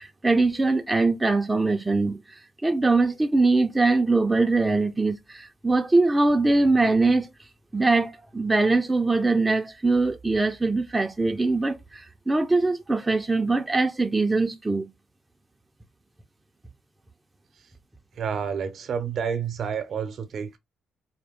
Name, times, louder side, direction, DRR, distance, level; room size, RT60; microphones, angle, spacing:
voice 1, 0.0-2.2 2.6-7.3 7.7-14.9, right 3 dB, 15° right, 0.6 m, -22 dB
voice 2, 18.2-20.6, right 7 dB, 60° right, 0.8 m, -29 dB
4.3 x 2.2 x 3.5 m
cardioid pair, 90°, 0 cm